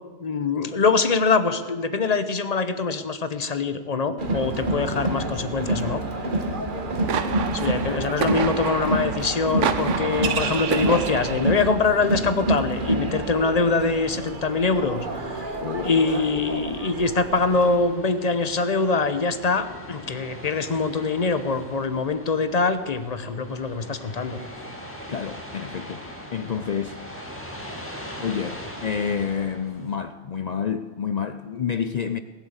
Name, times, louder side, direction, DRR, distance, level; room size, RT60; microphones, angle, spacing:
voice 1, 0.2-6.0 7.5-15.1 15.8-24.4, left 4 dB, 35° left, 0.9 m, -24 dB
Crowd, 4.2-17.8, right 2 dB, 45° right, 1.5 m, -28 dB
sound 1, 6.7-11.7, right 7 dB, 80° right, 1.2 m, -29 dB
voice 2, 15.6-16.2 25.1-26.0 26.3-27.0 28.2-32.2, left 7 dB, 55° left, 0.4 m, -29 dB
sound 2, 17.4-29.9, equal, 10° left, 2.2 m, -40 dB
19.0 x 8.0 x 8.0 m
omnidirectional pair, 1.3 m